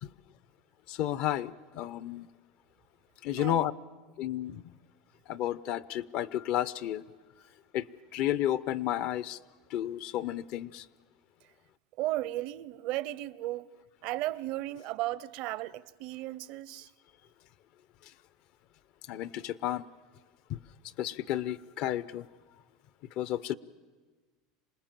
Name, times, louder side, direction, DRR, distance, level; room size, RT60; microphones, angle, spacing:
voice 1, 0.9-2.3 3.2-3.7 4.2-4.6 5.3-7.0 7.7-7.9 8.1-9.4 9.7-10.9 19.1-19.9 20.5-20.6 21.0-22.3 23.2-23.5, left 12 dB, 55° left, 0.6 m, -32 dB
voice 2, 12.0-13.7 14.0-16.9, right 16 dB, 60° right, 0.6 m, -35 dB
27.0 x 19.5 x 7.5 m
supercardioid pair, 125°, 2 cm